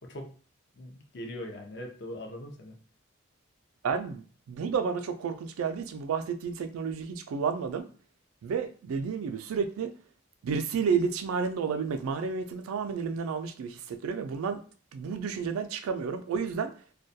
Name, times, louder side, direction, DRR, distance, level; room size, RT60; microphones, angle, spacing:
voice 1, 0.8-2.8, left 1 dB, 50° left, 2 dB, 0.5 m, -41 dB
voice 2, 3.8-7.9 8.4-9.9 10.4-14.6 14.9-16.7, right 6 dB, 80° right, 9 dB, 0.3 m, -31 dB
2.2 x 2.2 x 2.6 m, 0.40 s
head